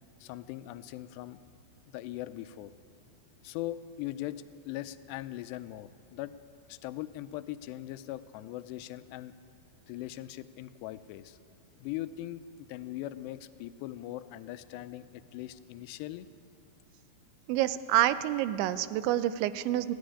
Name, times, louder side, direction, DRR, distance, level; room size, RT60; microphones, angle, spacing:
voice 1, 0.2-1.4 1.9-2.7 3.4-6.4 6.7-9.3 9.9-11.4 11.8-16.3, left 14 dB, 80° left, 12 dB, 2.6 m, -40 dB
voice 2, 17.5-20.0, right 13 dB, 85° right, 14 dB, 3.0 m, -28 dB
19.0 x 14.5 x 9.9 m, 2.4 s
omnidirectional pair, 5.3 m